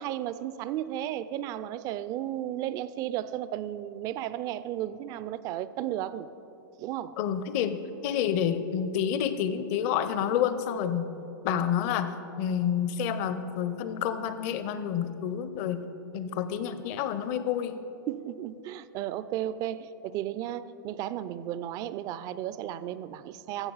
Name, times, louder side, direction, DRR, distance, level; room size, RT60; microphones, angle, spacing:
voice 1, 0.0-6.3 6.8-7.2 11.5-11.6 18.1-23.7, right 12 dB, 35° right, 15 dB, 0.3 m, -34 dB
voice 2, 7.2-11.1 11.4-15.8 16.1-17.8, left 9 dB, 45° left, 12 dB, 0.6 m, -29 dB
15.0 x 6.8 x 4.0 m, 3.0 s
hypercardioid pair, 110°, 11 cm